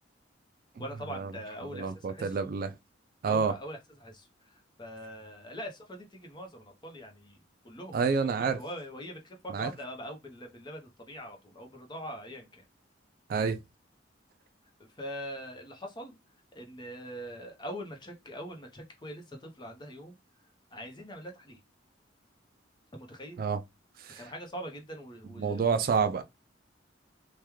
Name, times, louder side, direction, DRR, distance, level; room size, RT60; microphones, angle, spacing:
voice 1, 0.8-2.4 3.3-7.4 7.6-12.6 15.0-16.2 16.5-20.2 20.7-21.6 22.9-23.4 24.2-25.7, equal, 25° left, 0.7 m, -43 dB
voice 2, 1.7-2.7 3.2-3.5 7.9-8.6 9.5-9.7 13.3-13.6 23.4-23.6 24.0-24.2 25.4-26.2, right 5 dB, 50° right, 0.3 m, -28 dB
3.5 x 2.2 x 3.0 m
head